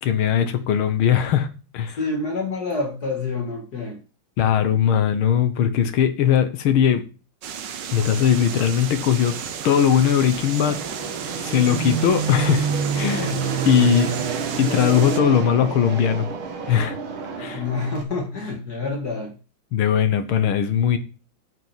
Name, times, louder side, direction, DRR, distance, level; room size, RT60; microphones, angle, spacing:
voice 1, 0.0-1.5 1.7-2.0 4.4-7.0 7.9-9.4 9.6-10.8 11.4-12.7 12.9-13.4 13.7-14.1 14.6-16.3 16.7-17.0 17.4-17.6 19.7-21.0, left 8 dB, 85° left, 2.0 m, -19 dB
voice 2, 2.0-4.0 17.5-19.4, left 3 dB, 50° left, 2.2 m, -27 dB
sound 1, 7.4-15.2, right 7 dB, 65° right, 1.6 m, -34 dB
Fixed-wing aircraft airplane, 7.8-18.0, right 5 dB, 90° right, 2.6 m, -29 dB
8.9 x 6.2 x 7.3 m
omnidirectional pair, 2.2 m